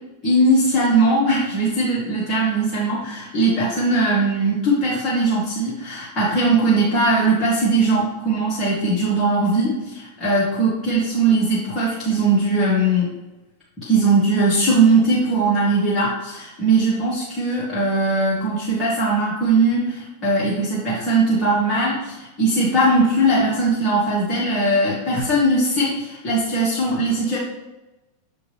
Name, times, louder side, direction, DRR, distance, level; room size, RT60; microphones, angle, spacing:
voice 1, 0.2-13.1 13.8-27.4, right 2 dB, 20° left, -8 dB, 1.7 m, -20 dB
6.7 x 4.7 x 3.3 m, 1.0 s
figure-of-eight pair, 90°, 0 cm